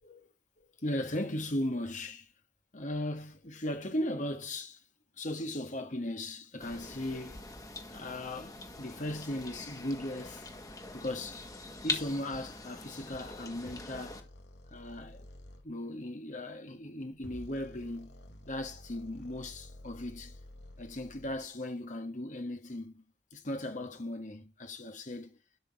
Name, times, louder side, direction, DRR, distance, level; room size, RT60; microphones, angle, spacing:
voice 1, 0.6-2.3 2.7-4.8 5.2-7.5 7.9-10.5 10.9-11.5 11.8-14.3 14.7-15.3 15.6-18.2 18.5-20.4 20.8-23.0 23.3-25.4, left 1 dB, 45° left, 1.6 m, -37 dB
sound 1, 6.6-14.2, left 2 dB, 20° left, 1.9 m, -42 dB
sound 2, 13.6-15.7 17.1-21.5, left 1 dB, 75° left, 2.2 m, -51 dB
11.5 x 6.3 x 6.1 m
head